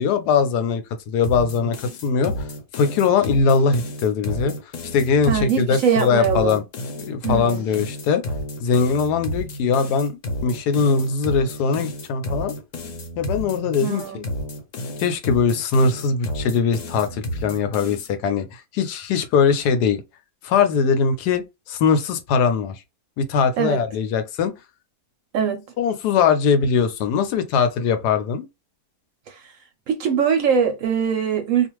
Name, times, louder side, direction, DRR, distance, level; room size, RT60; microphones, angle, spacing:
voice 1, 0.0-6.6 7.0-8.2 8.6-12.5 13.2-14.2 15.0-20.0 20.4-22.8 23.2-24.5 25.8-28.5, left 5 dB, 85° left, 1.2 m, -21 dB
sound 1, 1.2-18.1, left 1 dB, 60° left, 0.9 m, -32 dB
voice 2, 5.3-6.6 7.2-7.7 13.8-14.2 23.6-23.8 25.3-25.6 29.3-29.5 29.9-31.7, right 7 dB, 70° right, 0.8 m, -22 dB
2.5 x 2.4 x 3.0 m
omnidirectional pair, 1.7 m